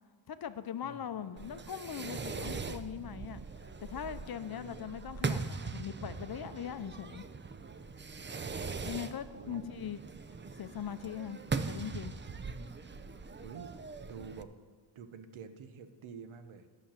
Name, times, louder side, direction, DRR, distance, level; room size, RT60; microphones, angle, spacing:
voice 1, 0.3-7.2 8.8-10.0 10.6-12.1, left 9 dB, 50° left, 12 dB, 0.6 m, -41 dB
voice 2, 0.8-1.2 4.5-5.0 8.3-9.1 9.3-9.9 12.5-12.9 13.4-14.5 14.9-16.7, right 6 dB, 90° right, 9 dB, 0.9 m, -49 dB
Fireworks, 1.4-14.4, right 4 dB, 25° right, 0.5 m, -41 dB
11.5 x 6.9 x 7.5 m, 1.5 s
wide cardioid pair, 115°, 47 cm